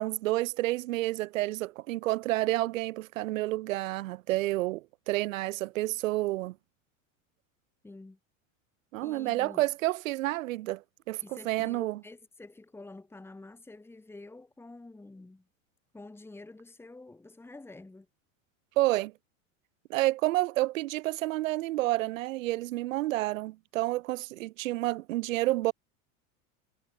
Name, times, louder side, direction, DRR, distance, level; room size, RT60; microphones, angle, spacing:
voice 1, 0.0-6.5 8.9-12.0 18.8-19.1 19.9-25.7, right 18 dB, 85° right, 1.0 m, -29 dB
voice 2, 7.8-8.2 9.0-9.6 11.2-15.5 15.9-18.1, left 2 dB, 5° left, 3.0 m, -48 dB
supercardioid pair, 145°, 39 cm